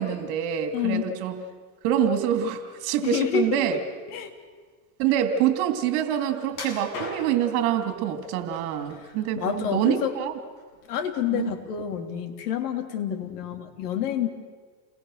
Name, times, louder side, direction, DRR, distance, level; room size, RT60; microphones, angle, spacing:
voice 1, 0.0-1.4 1.8-3.8 5.0-10.3 11.3-11.5, right 9 dB, 60° right, 7 dB, 3.0 m, -26 dB
voice 2, 0.7-1.1 3.0-3.8 4.1-4.3 9.0-9.1 9.3-10.1 10.9-14.3, left 9 dB, 75° left, 5 dB, 3.4 m, -28 dB
sound 1, 6.5-7.6 8.2-8.9 9.3-10.2 10.6-10.8 11.3-11.4, left 2 dB, 50° left, 7.7 m, -38 dB
29.5 x 21.0 x 6.6 m, 1.5 s
supercardioid pair, 135°, 47 cm